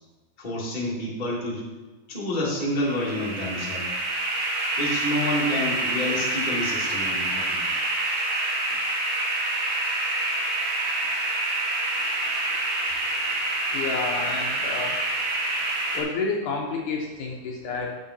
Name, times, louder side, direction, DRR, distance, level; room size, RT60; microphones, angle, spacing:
voice 1, 0.4-1.7 2.1-4.0 4.8-7.6 8.6-8.8, left 1 dB, 25° left, -4 dB, 1.0 m, -29 dB
sound 1, 2.8-16.0, right 2 dB, 55° right, 2.5 m, -27 dB
voice 2, 13.7-15.0 15.9-18.0, left 4 dB, 70° left, -1 dB, 2.1 m, -30 dB
9.3 x 7.4 x 4.1 m, 1.2 s
omnidirectional pair, 4.3 m